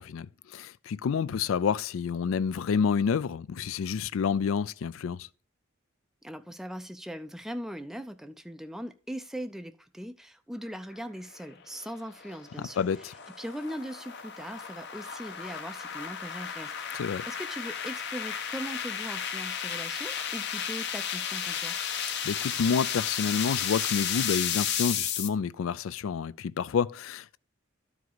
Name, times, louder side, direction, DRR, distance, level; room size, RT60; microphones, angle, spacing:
voice 1, 0.0-5.3 12.8-13.1 17.0-17.2 22.2-27.4, left 6 dB, 75° left, 0.4 m, -29 dB
voice 2, 6.2-21.8, equal, ahead, 0.4 m, -40 dB
sound 1, 11.3-25.3, left 8 dB, 55° left, 0.8 m, -33 dB
12.5 x 4.7 x 3.9 m
head